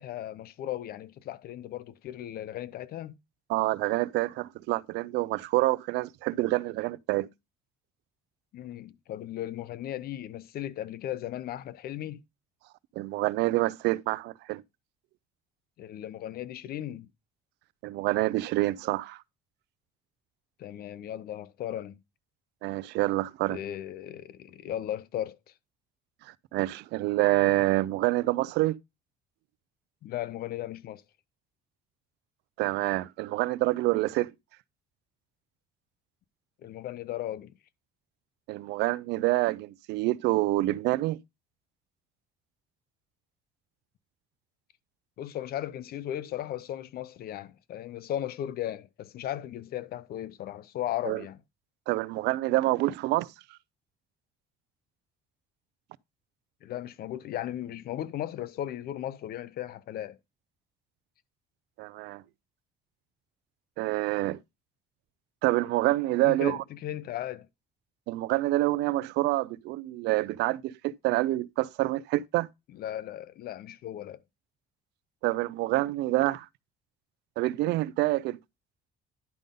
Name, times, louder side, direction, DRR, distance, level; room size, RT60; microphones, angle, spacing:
voice 1, 0.0-3.2 8.5-12.2 15.8-17.1 20.6-22.0 23.5-25.4 30.0-31.0 36.6-37.6 45.2-51.4 56.6-60.2 66.2-67.5 72.7-74.2, left 12 dB, 65° left, 0.8 m, -36 dB
voice 2, 3.5-7.3 13.0-14.6 17.8-19.2 22.6-23.6 26.2-28.7 32.6-34.3 38.5-41.2 51.1-51.2 51.9-53.3 61.8-62.2 63.8-64.4 65.4-66.6 68.1-72.5 75.2-76.5 77.4-78.4, right 18 dB, 85° right, 0.5 m, -27 dB
10.5 x 5.3 x 3.7 m
cardioid pair, 110°, 17 cm